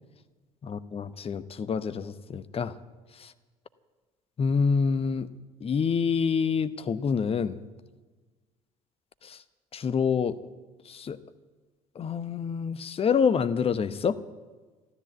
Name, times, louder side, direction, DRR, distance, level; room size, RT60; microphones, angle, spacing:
voice 1, 0.6-2.7 4.4-5.3 5.6-7.6 9.2-9.4 9.7-10.3 10.9-11.2 12.0-14.2, left 6 dB, 30° left, 13 dB, 0.9 m, -27 dB
13.5 x 13.0 x 8.0 m, 1.3 s
figure-of-eight pair, 60°, 18 cm